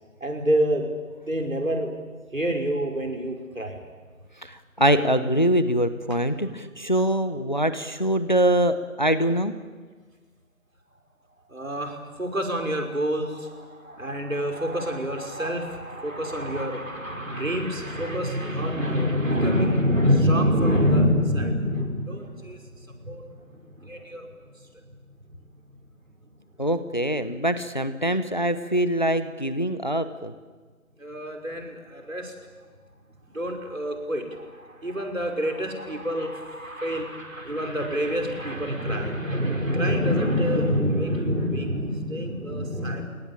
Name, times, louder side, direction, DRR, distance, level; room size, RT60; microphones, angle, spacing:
voice 1, 0.2-1.0 1.2-2.0 2.3-3.8 11.5-23.2 23.5-24.3 25.3-25.4 31.0-32.3 33.3-43.1, equal, 65° right, 3 dB, 5.7 m, -26 dB
voice 2, 4.4-9.5 26.6-30.3, right 1 dB, 30° left, 12 dB, 1.0 m, -23 dB
29.5 x 19.0 x 8.9 m, 1.5 s
figure-of-eight pair, 170°, 43 cm